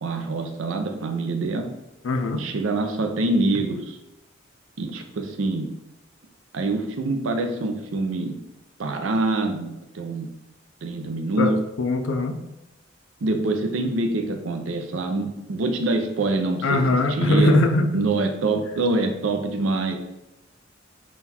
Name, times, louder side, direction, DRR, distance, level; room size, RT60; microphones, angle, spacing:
voice 1, 0.0-1.7 2.3-4.0 4.8-5.7 6.5-8.4 8.8-10.3 10.8-11.6 13.2-17.6 17.9-20.0, right 2 dB, 80° right, 5 dB, 0.5 m, -25 dB
voice 2, 2.0-2.4 11.4-11.5 11.8-12.4 16.6-18.1, left 2 dB, 75° left, 7 dB, 0.4 m, -21 dB
3.8 x 2.3 x 4.2 m, 0.90 s
head